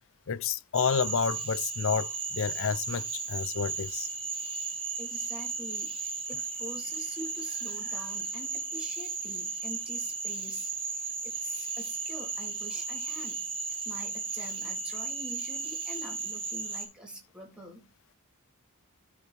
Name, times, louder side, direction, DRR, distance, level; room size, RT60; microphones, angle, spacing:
voice 1, 0.3-4.1, left 6 dB, 60° left, 0.6 m, -30 dB
Cricket / Frog, 0.7-16.9, right 4 dB, 25° right, 2.7 m, -35 dB
voice 2, 5.0-13.4 13.8-17.9, right 1 dB, 5° right, 3.0 m, -45 dB
13.0 x 4.9 x 3.4 m
head